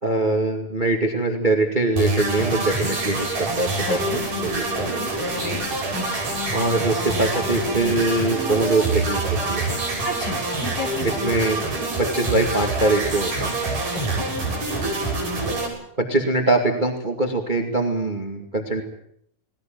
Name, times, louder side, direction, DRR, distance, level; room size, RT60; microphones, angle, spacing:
voice 1, 0.0-5.1 6.5-9.7 11.0-11.6 12.0-13.5 16.0-18.8, right 2 dB, 30° right, 3 dB, 0.8 m, -23 dB
sound 1, 2.0-15.7, right 2 dB, 45° right, 8.3 m, -26 dB
voice 2, 3.9-4.2 5.0-5.1 5.4-5.6 5.9-6.1 10.0-11.2 13.9-14.2, left 2 dB, 25° left, 2 dB, 3.7 m, -31 dB
19.5 x 19.5 x 9.3 m, 0.70 s
omnidirectional pair, 5.0 m